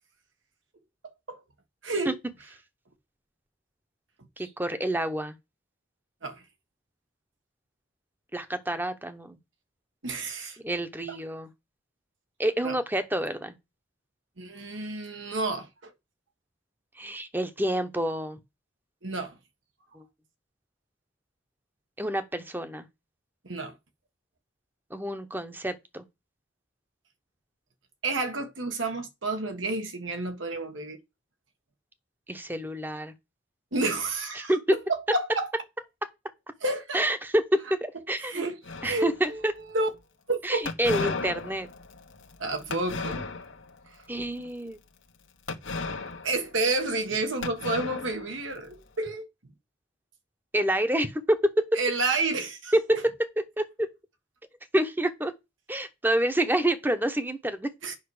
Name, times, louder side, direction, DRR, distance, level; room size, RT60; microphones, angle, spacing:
voice 1, 1.8-2.2 6.2-6.4 10.0-10.6 11.1-11.2 12.6-12.7 14.4-15.9 19.0-19.4 23.4-23.7 28.0-31.0 33.7-34.5 35.1-35.5 36.6-37.0 38.2-39.4 39.7-39.9 40.3-40.6 42.4-43.3 46.2-49.3 51.7-53.0 57.8-58.0, right 2 dB, 85° right, 1.6 m, -30 dB
voice 2, 4.4-5.4 8.3-9.4 10.6-11.5 12.4-13.5 17.0-18.4 19.9-20.0 22.0-22.9 24.9-26.0 32.3-33.1 34.4-34.6 36.9-38.4 38.8-39.5 40.4-41.7 44.1-44.8 50.5-51.8 52.7-53.0 53.6-53.9 54.7-55.3 55.7-57.7, right 1 dB, 10° right, 0.9 m, -28 dB
sound 1, 38.6-39.4 40.6-43.7 44.2-44.5 45.5-47.1 47.4-48.8, left 4 dB, 85° left, 1.2 m, -35 dB
8.3 x 5.5 x 4.9 m
head